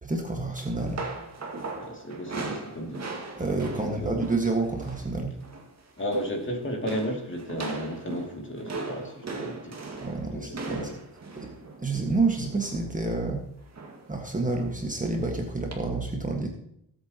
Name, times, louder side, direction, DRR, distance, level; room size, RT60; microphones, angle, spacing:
voice 1, 0.0-1.0 3.3-5.3 10.0-10.9 11.4-11.5 11.8-13.5 14.1-16.5, right 3 dB, 20° right, 1 dB, 1.7 m, -28 dB
sound 1, 0.6-5.1 5.4-5.7 6.0-6.5 6.9-12.9 13.7-14.1 14.5-14.6 15.7-15.8, right 3 dB, 40° right, 2.1 m, -38 dB
voice 2, 1.8-3.0 3.8-4.1 6.0-9.8 10.3-11.0, equal, 30° left, 1 dB, 2.7 m, -33 dB
18.0 x 8.2 x 3.0 m, 0.72 s
cardioid pair, 95°, 41 cm